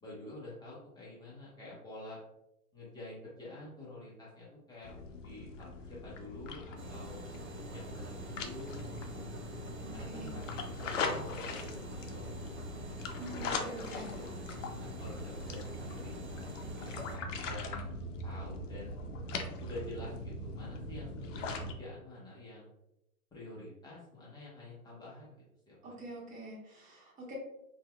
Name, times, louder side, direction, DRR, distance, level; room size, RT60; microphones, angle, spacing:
voice 1, 0.0-2.2 2.7-4.9 5.2-5.7 6.0-7.2 7.7-9.3 9.9-12.5 13.4-16.3 16.9-17.9 18.2-19.1 19.6-22.7 23.3-25.9, left 1 dB, 10° left, -7 dB, 0.6 m, -48 dB
sound 1, 4.8-21.7, left 3 dB, 60° left, 0.6 m, -41 dB
sound 2, 6.8-17.2, right 2 dB, 50° right, 1.0 m, -46 dB
voice 2, 9.8-10.4 13.1-14.1 25.8-27.3, right 1 dB, 20° right, -4 dB, 1.0 m, -46 dB
3.9 x 2.2 x 2.2 m, 0.86 s
hypercardioid pair, 120°, 44 cm